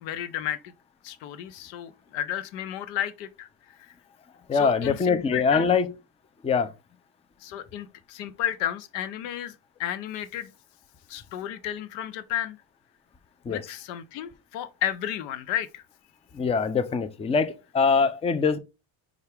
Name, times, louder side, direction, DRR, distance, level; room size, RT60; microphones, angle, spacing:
voice 1, 0.0-0.7 1.0-3.5 3.8-3.9 4.5-5.7 7.4-10.5 11.1-12.6 13.5-15.8, left 11 dB, 90° left, 0.6 m, -32 dB
voice 2, 4.5-5.9 6.4-6.7 13.4-13.6 16.3-18.6, left 5 dB, 15° left, 0.4 m, -23 dB
5.4 x 2.4 x 3.3 m
supercardioid pair, 95°, 46 cm